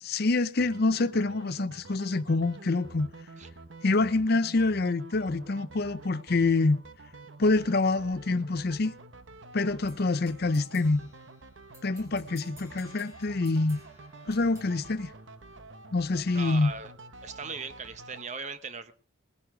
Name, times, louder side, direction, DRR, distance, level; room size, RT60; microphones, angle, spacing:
voice 1, 0.0-3.1 3.8-6.8 7.4-8.9 9.5-11.1 11.8-13.8 14.3-15.1 15.9-16.7, left 3 dB, 50° left, 0.6 m, -26 dB
sound 1, 0.6-18.3, right 3 dB, 65° right, 1.1 m, -48 dB
sound 2, 9.9-15.9, equal, 15° right, 3.7 m, -57 dB
voice 2, 16.3-16.9 17.2-18.9, right 5 dB, 35° right, 1.0 m, -38 dB
19.5 x 11.0 x 4.8 m
head